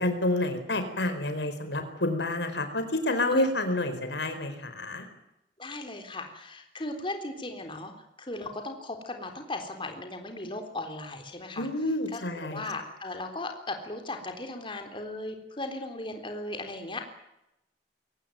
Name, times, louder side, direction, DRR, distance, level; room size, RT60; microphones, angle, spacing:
voice 1, 0.0-5.1 11.6-12.6, left 1 dB, 80° left, 8 dB, 4.5 m, -29 dB
voice 2, 5.6-7.9 8.2-11.7 12.1-17.0, left 2 dB, 30° left, 5 dB, 3.7 m, -37 dB
23.0 x 18.5 x 9.3 m, 0.85 s
head